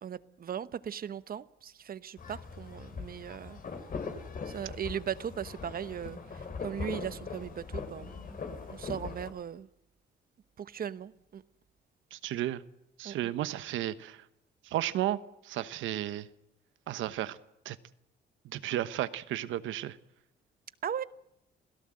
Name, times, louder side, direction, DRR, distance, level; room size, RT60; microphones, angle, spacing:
voice 1, 0.0-3.6 4.5-8.4 8.7-9.7 10.6-11.4 13.0-13.3 20.8-21.0, right 8 dB, 50° right, 0.9 m, -38 dB
sound 1, 2.2-9.3, left 5 dB, 45° left, 3.6 m, -41 dB
voice 2, 12.1-12.6 13.0-14.2 14.6-16.3 16.9-17.4 17.6-17.8 18.4-20.0, right 13 dB, 85° right, 1.1 m, -33 dB
28.0 x 17.0 x 7.7 m
cardioid pair, 95°, 20 cm